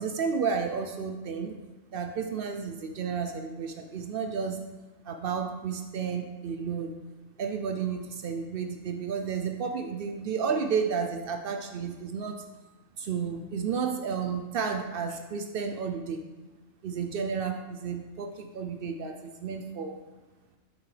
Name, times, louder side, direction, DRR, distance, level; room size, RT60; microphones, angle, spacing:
voice 1, 0.0-1.5 1.9-4.6 5.1-6.9 7.4-12.4 13.0-16.2 16.8-19.9, right 6 dB, 75° right, 5 dB, 0.5 m, -32 dB
7.1 x 6.1 x 3.3 m, 1.2 s
omnidirectional pair, 1.5 m